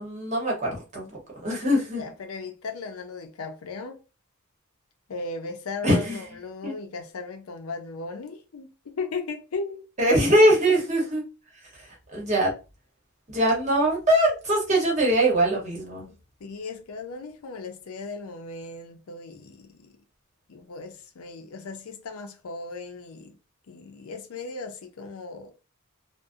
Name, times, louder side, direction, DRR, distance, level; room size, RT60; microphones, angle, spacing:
voice 1, 0.0-2.0 5.8-6.2 6.6-6.7 10.0-11.2 12.1-12.5 13.3-16.1, right 1 dB, 35° right, 0.9 m, -22 dB
voice 2, 2.0-4.0 5.1-9.9 15.9-20.0 20.5-23.4 23.7-25.5, left 3 dB, 85° left, 0.5 m, -37 dB
2.5 x 2.1 x 2.4 m
head